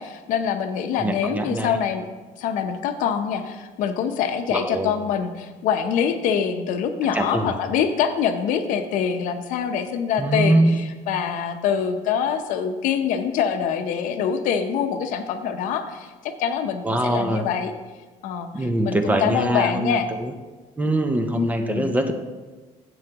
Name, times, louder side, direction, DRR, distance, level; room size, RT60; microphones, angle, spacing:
voice 1, 0.0-2.1 2.4-10.6 11.1-16.1 16.4-17.7 18.2-20.1 21.3-21.9, left 7 dB, 75° left, 7 dB, 0.7 m, -25 dB
voice 2, 1.0-1.8 4.5-4.9 7.1-7.5 10.2-10.8 16.8-17.5 18.5-20.3 20.8-22.1, right 1 dB, 10° right, 6 dB, 0.6 m, -23 dB
10.5 x 7.9 x 2.9 m, 1.3 s
cardioid pair, 145°, 14 cm